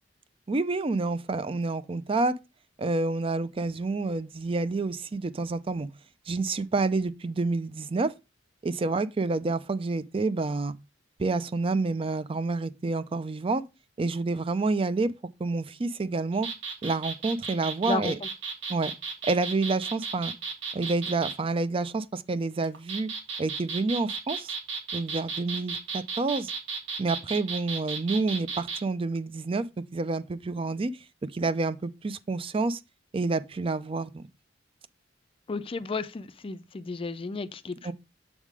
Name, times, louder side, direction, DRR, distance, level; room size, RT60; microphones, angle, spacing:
voice 1, 0.5-2.4 2.8-5.9 6.3-8.1 8.6-10.7 11.2-13.6 14.0-15.1 15.4-16.5 16.8-18.2 18.7-18.9 19.2-20.3 20.7-23.1 23.4-24.5 24.9-26.5 27.0-30.9 31.3-32.8 33.1-34.3 37.8-37.9, right 3 dB, 30° right, 0.4 m, -28 dB
sound 1, 16.3-21.4 22.6-28.8, right 5 dB, 90° right, 1.5 m, -34 dB
voice 2, 17.9-18.3 35.5-37.9, left 3 dB, 30° left, 0.4 m, -33 dB
7.4 x 3.6 x 4.7 m
head